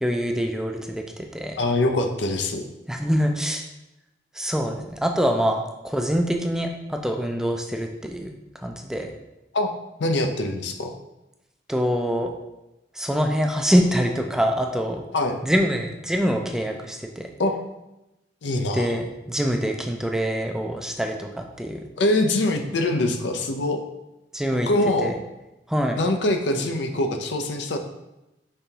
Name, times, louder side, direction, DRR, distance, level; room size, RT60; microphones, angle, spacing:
voice 1, 0.0-1.6 2.9-3.6 4.4-8.3 8.6-9.1 11.7-12.3 13.0-15.0 15.4-17.3 18.7-21.9 24.3-24.7 25.0-25.1 25.7-26.0, equal, 5° right, 3 dB, 0.3 m, -25 dB
voice 2, 1.6-2.6 9.5-9.7 10.0-10.9 15.1-15.4 17.4-17.6 18.4-18.9 22.0-23.8 24.5-25.2 26.0-27.8, left 2 dB, 80° left, 5 dB, 0.5 m, -23 dB
5.5 x 3.4 x 2.8 m, 0.95 s
head